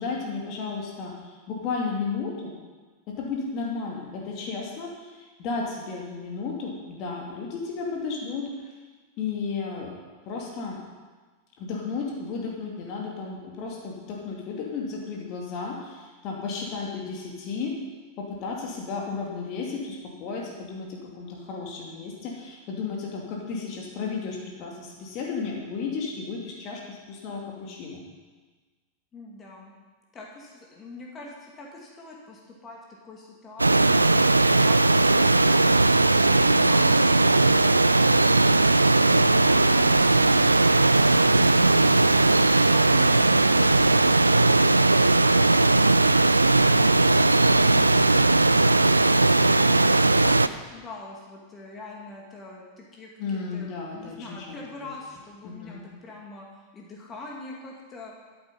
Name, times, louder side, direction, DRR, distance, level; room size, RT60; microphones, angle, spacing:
voice 1, 0.0-2.6 3.2-8.8 9.2-10.0 10.3-10.8 11.6-17.8 18.2-28.0 53.2-54.9 55.4-55.8, left 4 dB, 40° left, -1 dB, 2.4 m, -33 dB
voice 2, 29.1-29.7 30.1-34.0 34.5-35.6 49.3-56.5 56.7-58.1, left 3 dB, 25° left, -2 dB, 2.4 m, -43 dB
sound 1, 33.6-50.5, right 2 dB, 80° right, 0.3 m, -19 dB
13.5 x 8.3 x 5.4 m, 1.4 s
figure-of-eight pair, 90°, 0 cm